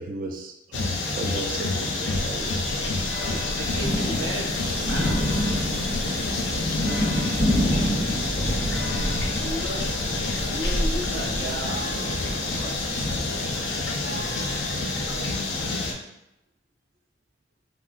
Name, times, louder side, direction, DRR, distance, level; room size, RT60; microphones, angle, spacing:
voice 1, 0.0-2.6, right 3 dB, 50° right, 3 dB, 0.3 m, -35 dB
sound 1, 0.7-15.9, left 3 dB, 90° left, 0.5 m, -28 dB
sound 2, 2.1-15.7, equal, 65° right, 1.0 m, -35 dB
voice 2, 3.2-4.5 4.8-5.2 9.4-9.8 10.4-12.1 12.4-13.3, right 1 dB, 85° right, -2 dB, 0.7 m, -35 dB
sound 3, 3.7-14.5, equal, 15° right, 0.7 m, -29 dB
voice 3, 7.6-8.7 10.4-10.6 11.7-11.8, equal, 30° left, 2 dB, 0.3 m, -42 dB
3.6 x 2.1 x 2.4 m, 0.88 s
head